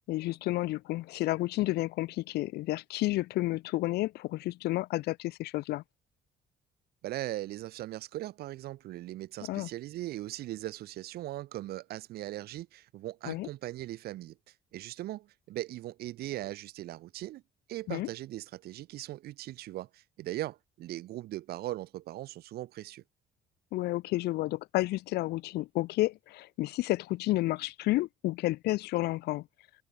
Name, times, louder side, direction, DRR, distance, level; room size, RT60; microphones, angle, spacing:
voice 1, 0.1-5.8 9.4-9.7 13.3-13.5 17.9-18.1 23.7-29.5, left 18 dB, 75° left, 0.6 m, -31 dB
voice 2, 7.0-14.4 14.7-17.4 17.7-23.0, right 15 dB, 70° right, 0.7 m, -39 dB
cardioid pair, 110°, 17 cm